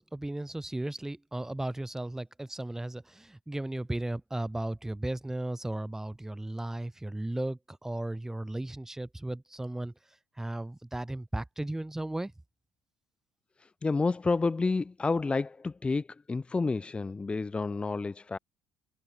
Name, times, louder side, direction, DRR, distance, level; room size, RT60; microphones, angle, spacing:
voice 1, 0.0-9.9 10.4-12.3, right 1 dB, 5° right, 2.1 m, -35 dB
voice 2, 13.6-18.4, left 3 dB, 20° left, 1.4 m, -30 dB
open air
cardioid pair, 120°, 6 cm